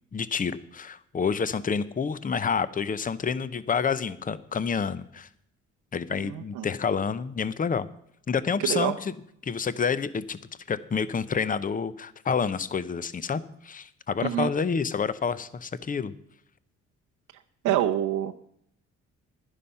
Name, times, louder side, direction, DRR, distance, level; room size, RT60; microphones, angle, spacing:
voice 1, 0.1-5.3 5.9-7.9 8.3-9.1 9.4-10.4 10.7-16.1, left 6 dB, 30° left, 16 dB, 0.7 m, -28 dB
voice 2, 6.3-6.6 8.7-8.9 14.2-14.5 17.6-18.3, right 12 dB, 90° right, 4 dB, 0.7 m, -26 dB
11.5 x 10.0 x 5.5 m, 0.72 s
cardioid pair, 90°, 30 cm